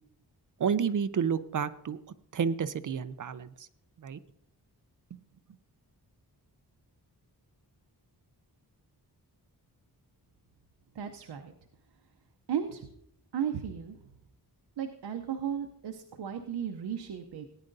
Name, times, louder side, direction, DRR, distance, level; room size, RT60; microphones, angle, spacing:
voice 1, 0.6-2.0 2.3-3.5 4.0-4.2 5.1-5.2, right 7 dB, 50° right, 14 dB, 0.6 m, -30 dB
voice 2, 11.0-11.5 12.5-12.9 13.3-14.0 14.8-17.5, right 8 dB, 80° right, 5 dB, 0.8 m, -35 dB
17.5 x 9.9 x 2.6 m, 0.75 s
wide cardioid pair, 95°, 40 cm